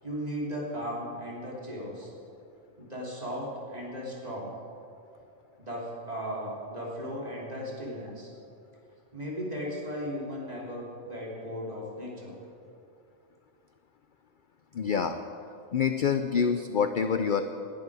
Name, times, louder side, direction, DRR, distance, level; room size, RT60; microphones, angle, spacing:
voice 1, 0.0-2.1 2.8-4.5 5.6-8.3 9.1-12.4, equal, 30° right, -4 dB, 3.2 m, -36 dB
voice 2, 14.7-15.2 15.7-17.4, left 6 dB, 55° left, 8 dB, 0.6 m, -26 dB
20.0 x 11.0 x 4.9 m, 2.6 s
omnidirectional pair, 1.4 m